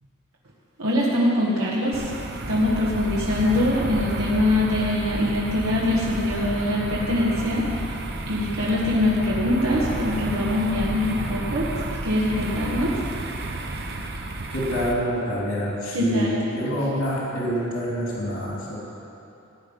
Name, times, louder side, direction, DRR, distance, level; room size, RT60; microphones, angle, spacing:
voice 1, 0.8-2.0 2.5-7.9 8.3-11.7 12.0-12.9 15.9-16.3, left 1 dB, 85° right, -5 dB, 1.6 m, -23 dB
sound 1, 1.9-14.9, right 2 dB, 50° right, 1.0 m, -31 dB
voice 2, 14.5-18.8, equal, 75° left, -6 dB, 3.1 m, -26 dB
16.0 x 5.4 x 9.6 m, 2.8 s
head